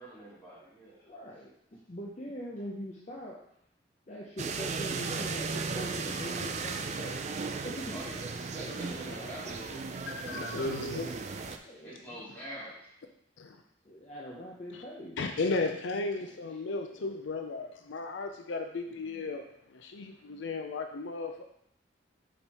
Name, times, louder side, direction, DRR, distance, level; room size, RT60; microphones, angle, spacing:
voice 1, 0.0-1.1 7.9-8.3 8.5-9.9 10.5-11.1 11.6-12.9 16.5-16.8, right 1 dB, 10° left, -9 dB, 2.6 m, -46 dB
voice 2, 1.0-3.4 4.1-7.2 7.6-8.3 8.6-10.0 10.3-10.6 11.6-12.2 13.8-15.2 16.7-17.2 18.9-19.3, equal, 40° left, -4 dB, 0.7 m, -43 dB
sound 1, 4.4-11.6, right 4 dB, 40° right, 0.4 m, -36 dB
voice 3, 10.1-11.1 13.4-13.6 15.2-21.4, left 3 dB, 80° left, 5 dB, 0.5 m, -35 dB
5.2 x 4.5 x 4.2 m, 0.73 s
head